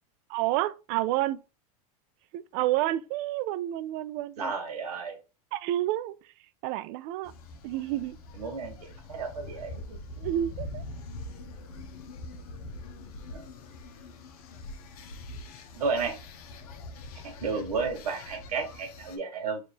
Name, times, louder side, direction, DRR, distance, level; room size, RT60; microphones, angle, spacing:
voice 1, 0.3-1.4 2.3-4.5 5.5-6.2 6.6-7.3 7.6-8.2 10.2-10.8, right 14 dB, 55° right, 0.4 m, -29 dB
voice 2, 4.4-5.2 8.4-8.7 9.1-10.0 13.3-13.4 15.7-16.2 17.2-19.6, right 5 dB, 90° right, 1.2 m, -32 dB
sound 1, 7.2-19.2, left 2 dB, 80° left, 0.7 m, -43 dB
3.3 x 2.5 x 4.2 m
hypercardioid pair, 110°, 19 cm